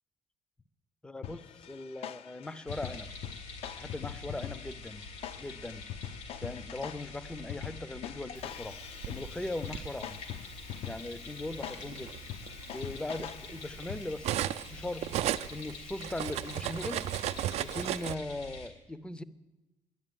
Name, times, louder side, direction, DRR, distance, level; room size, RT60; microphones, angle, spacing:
voice 1, 1.0-3.1 3.8-5.0 5.4-5.8 6.4-8.8 9.1-10.2 10.9-12.2 12.7-15.1 15.5-17.1 17.6-19.2, left 2 dB, 10° left, 14 dB, 0.5 m, -39 dB
sound 1, 1.2-14.4, left 11 dB, 60° left, 0.5 m, -44 dB
sound 2, 2.7-18.7, left 3 dB, 90° left, 3.1 m, -46 dB
Cutlery silverware, 8.6-9.9 10.9-11.1 11.5-14.7 15.0-18.1, right 13 dB, 70° right, 0.4 m, -35 dB
11.0 x 11.0 x 9.2 m, 1.1 s
cardioid pair, 155°, 11 cm